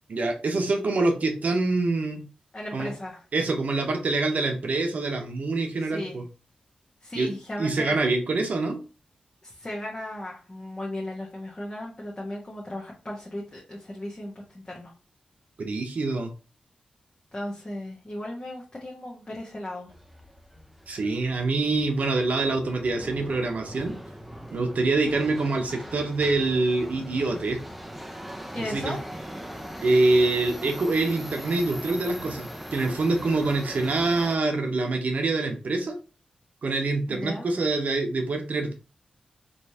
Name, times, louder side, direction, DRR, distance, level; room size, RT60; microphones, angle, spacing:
voice 1, 0.1-2.2 2.7-2.9 3.3-6.2 7.2-7.3 7.6-8.8 15.6-16.3 20.9-23.9 24.5-27.6 28.7-29.0 29.8-36.0 36.6-38.7, right 3 dB, 60° right, 4 dB, 0.8 m, -25 dB
voice 2, 2.5-3.2 5.8-6.2 7.0-7.9 9.4-14.9 17.3-19.9 28.5-29.0 37.1-37.5, left 1 dB, 30° left, -4 dB, 1.2 m, -36 dB
Subway metro underground, 19.9-34.4, equal, 5° right, 0.6 m, -41 dB
3.2 x 3.1 x 2.8 m, 0.34 s
cardioid pair, 45°, 3 cm